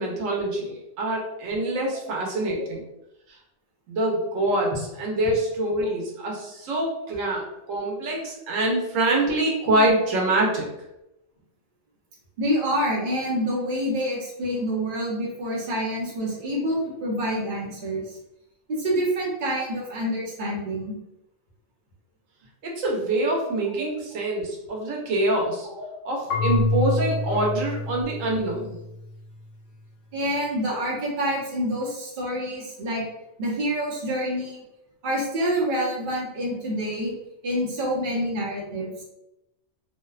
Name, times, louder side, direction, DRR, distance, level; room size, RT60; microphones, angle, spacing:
voice 1, 0.0-2.8 3.9-4.7 5.0-10.7 22.6-25.7 26.1-28.8, right 1 dB, 85° right, -1 dB, 1.1 m, -25 dB
voice 2, 12.4-18.2 18.7-20.9 25.7-25.8 27.3-27.4 30.1-33.0 33.4-34.6 35.0-37.1 37.4-39.0, equal, 50° right, -4 dB, 0.8 m, -27 dB
Marimba xylophone / Wood, 26.3-29.2, left 2 dB, 75° left, 0.9 m, -27 dB
2.6 x 2.1 x 2.3 m, 0.89 s
omnidirectional pair, 1.3 m